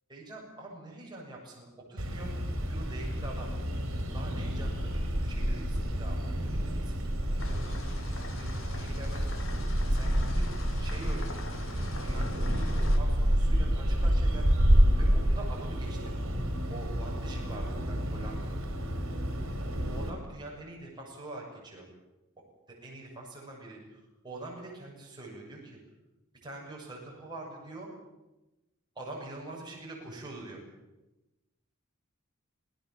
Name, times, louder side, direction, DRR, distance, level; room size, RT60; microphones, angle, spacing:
voice 1, 0.1-3.5 4.1-9.5 9.9-10.5 10.8-11.5 12.0-14.5 15.0-16.2 16.7-18.6 19.9-21.9 22.7-25.8 26.4-27.9 29.0-30.6, right 2 dB, 20° right, -3 dB, 7.1 m, -45 dB
sound 1, 2.0-20.1, equal, 65° right, 4.4 m, -29 dB
sound 2, 7.4-13.0, left 3 dB, 65° left, 2.8 m, -45 dB
26.5 x 17.5 x 7.5 m, 1.0 s
head